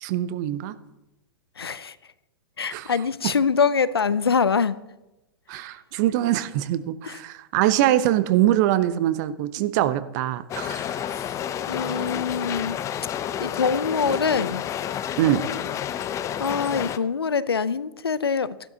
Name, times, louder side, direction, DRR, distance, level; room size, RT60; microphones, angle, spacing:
voice 1, 0.0-0.7 2.7-2.9 5.5-11.1 15.2-15.4, right 13 dB, 50° right, 0.8 m, -23 dB
voice 2, 1.6-2.0 2.6-4.8 7.0-7.2 11.1-11.4 11.7-12.8 13.4-14.6 16.4-18.7, left 6 dB, 90° left, 0.5 m, -24 dB
sound 1, 10.5-17.0, left 10 dB, 25° left, 0.5 m, -30 dB
14.5 x 12.0 x 2.8 m
hypercardioid pair, 110°, 13 cm